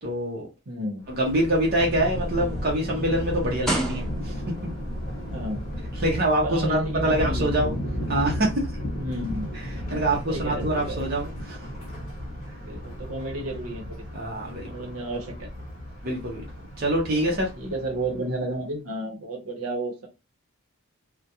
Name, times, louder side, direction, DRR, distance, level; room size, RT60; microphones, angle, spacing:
voice 1, 0.0-0.5 1.1-4.4 6.0-7.7 8.1-8.7 9.9-11.6 14.1-14.7 16.0-16.4 16.8-17.5, right 1 dB, 45° right, 0.6 m, -25 dB
voice 2, 0.7-1.1 5.3-5.6 6.4-7.7 9.0-9.5 10.3-11.0 12.6-14.0 14.6-15.5 17.3-20.1, right 1 dB, 80° right, 0.8 m, -32 dB
Thunder, 1.0-18.4, equal, 35° left, 1.0 m, -34 dB
sound 1, 1.5-4.6 5.5-5.6, right 1 dB, ahead, 0.4 m, -32 dB
2.3 x 2.1 x 2.8 m
head